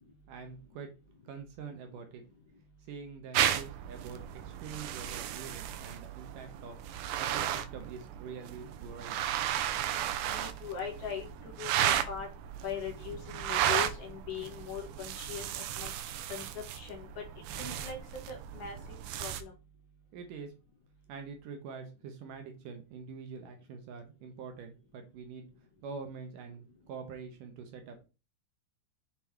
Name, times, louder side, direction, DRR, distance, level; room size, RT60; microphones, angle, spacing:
voice 1, 0.3-0.9 1.3-2.2 2.8-6.8 7.2-9.3 20.1-20.5 21.1-25.5 25.8-28.0, right 5 dB, 70° right, 5 dB, 2.4 m, -45 dB
sound 1, 3.3-19.4, right 11 dB, 85° right, 2.5 m, -34 dB
voice 2, 10.3-11.3 11.6-12.3 12.6-15.9 16.3-16.4 16.7-17.1 17.6-18.0 18.3-18.8 19.2-19.5, left 7 dB, 60° left, 2 dB, 2.7 m, -40 dB
7.1 x 4.0 x 4.5 m, 0.31 s
omnidirectional pair, 4.3 m